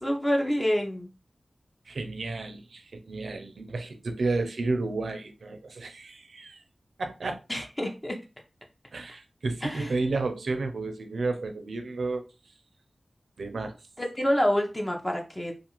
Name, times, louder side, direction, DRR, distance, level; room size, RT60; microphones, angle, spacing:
voice 1, 0.0-1.1 7.5-8.2 9.6-9.9 14.0-15.5, equal, 20° left, 0.6 m, -27 dB
voice 2, 1.9-6.6 7.0-7.4 8.9-12.3 13.4-13.7, right 3 dB, 85° right, 0.4 m, -32 dB
2.4 x 2.4 x 2.9 m
cardioid pair, 45°, 0 cm